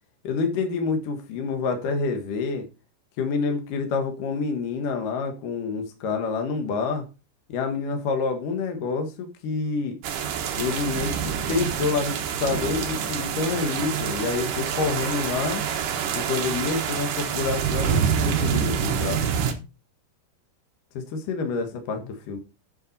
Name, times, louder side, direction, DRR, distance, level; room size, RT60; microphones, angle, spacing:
voice 1, 0.2-2.7 3.2-7.1 7.5-10.0 10.5-15.6 16.1-19.2 20.9-22.4, left 4 dB, 65° left, 5 dB, 2.2 m, -28 dB
sound 1, 10.0-19.5, right 7 dB, 75° right, 1.9 m, -27 dB
10.0 x 7.5 x 4.1 m, 0.30 s
omnidirectional pair, 5.7 m